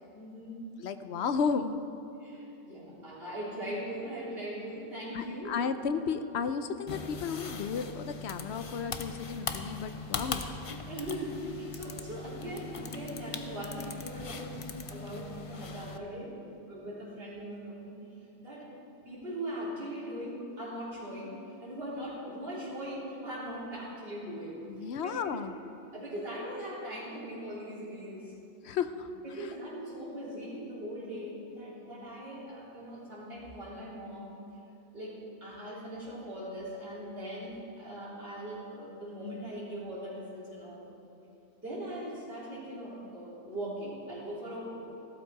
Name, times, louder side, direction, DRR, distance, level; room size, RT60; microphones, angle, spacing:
voice 1, 0.1-0.6 2.2-5.5 10.9-16.3 16.6-17.9 18.4-18.7 19.0-24.6 25.0-25.4 25.9-28.3 29.2-34.3 34.9-40.9 41.6-44.8, equal, 55° right, -9 dB, 3.9 m, -40 dB
voice 2, 0.8-1.8 5.1-10.5 24.7-25.5 28.6-29.1 29.4-29.5, left 6 dB, 70° left, 10 dB, 0.9 m, -33 dB
sound 1, 6.9-16.0, left 4 dB, 40° left, 0.6 m, -40 dB
14.5 x 12.5 x 4.7 m, 2.9 s
omnidirectional pair, 1.2 m